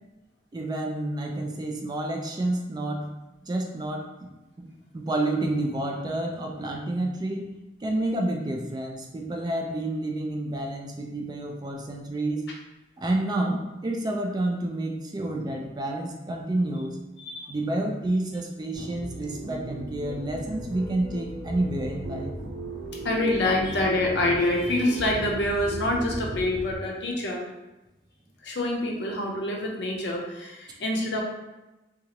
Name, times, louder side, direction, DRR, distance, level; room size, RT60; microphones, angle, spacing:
voice 1, 0.5-3.1 3.5-4.3 4.6-4.7 4.9-7.5 7.8-12.5 13.0-17.0 17.5-22.3, right 1 dB, 25° right, 1 dB, 0.3 m, -29 dB
voice 2, 17.2-17.5 23.0-27.4 28.4-31.2, left 1 dB, 70° left, -1 dB, 0.6 m, -26 dB
sound 1, 18.7-26.7, right 2 dB, 85° right, 0.7 m, -36 dB
2.8 x 2.4 x 2.9 m, 1.0 s
head